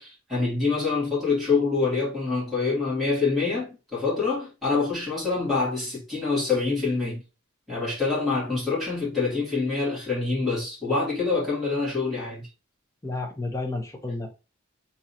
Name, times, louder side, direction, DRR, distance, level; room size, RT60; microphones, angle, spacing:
voice 1, 0.0-7.2 7.7-12.5, left 4 dB, ahead, 2.2 m, -26 dB
voice 2, 13.0-14.4, left 2 dB, 15° left, 0.6 m, -31 dB
3.7 x 2.9 x 2.7 m
head